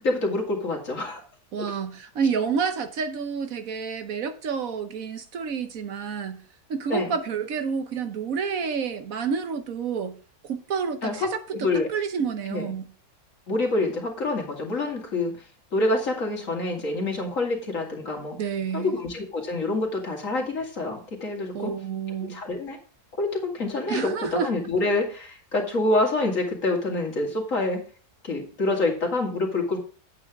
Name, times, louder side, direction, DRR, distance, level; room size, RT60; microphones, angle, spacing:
voice 1, 0.0-1.2 6.9-7.1 11.0-11.9 12.5-12.7 13.5-15.3 15.7-18.4 18.7-21.7 22.2-22.8 23.2-27.8 28.2-29.8, left 2 dB, 55° left, 2.7 m, -26 dB
voice 2, 1.5-6.4 6.7-10.1 10.4-11.4 11.9-12.9 18.3-19.0 21.5-22.4 23.9-24.5, right 6 dB, 65° right, 1.3 m, -29 dB
8.9 x 8.6 x 3.6 m
omnidirectional pair, 1.6 m